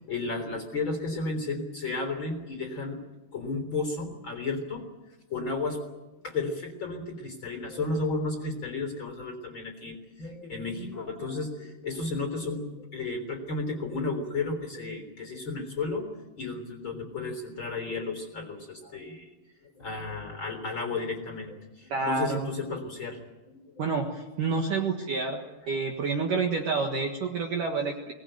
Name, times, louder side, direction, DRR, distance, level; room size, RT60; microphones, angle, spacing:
voice 1, 0.1-3.0 3.3-4.8 5.3-5.8 6.2-16.1 16.4-19.3 19.6-23.2 23.5-23.8, left 3 dB, 25° left, 5 dB, 3.6 m, -33 dB
voice 2, 21.9-22.5 23.8-28.1, right 4 dB, 60° right, 2 dB, 2.5 m, -29 dB
24.0 x 19.5 x 9.1 m, 1.1 s
omnidirectional pair, 5.6 m